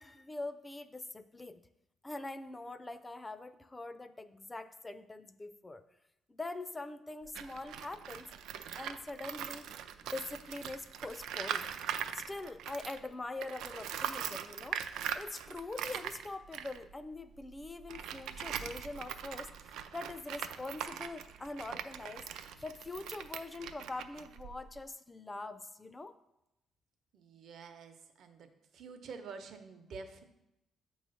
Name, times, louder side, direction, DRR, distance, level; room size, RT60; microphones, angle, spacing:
voice 1, 0.0-1.6 2.0-5.8 6.3-8.3 8.7-9.7 10.0-11.7 12.1-14.8 15.1-26.2, left 2 dB, 20° left, 12 dB, 0.4 m, -43 dB
Tools, 7.2-13.1 13.4-24.8, right 9 dB, 85° right, 0.4 m, -41 dB
voice 2, 27.1-28.5 28.7-30.2, right 5 dB, 70° right, 7 dB, 0.8 m, -48 dB
7.7 x 3.1 x 5.4 m, 0.88 s
cardioid pair, 90°, 0 cm